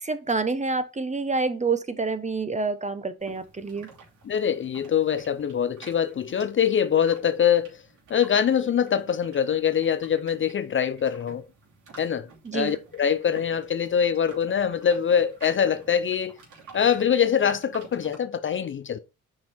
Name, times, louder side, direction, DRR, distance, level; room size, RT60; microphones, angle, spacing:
voice 1, 0.0-3.9 12.4-12.8, right 4 dB, 25° right, 1.0 m, -28 dB
sound 1, 3.2-18.2, right 4 dB, 75° right, 3.0 m, -50 dB
voice 2, 4.3-7.8 8.1-11.4 12.0-12.3 12.5-16.4 16.7-19.0, left 8 dB, 40° left, 0.5 m, -24 dB
5.9 x 4.6 x 4.3 m
cardioid pair, 70°, 30 cm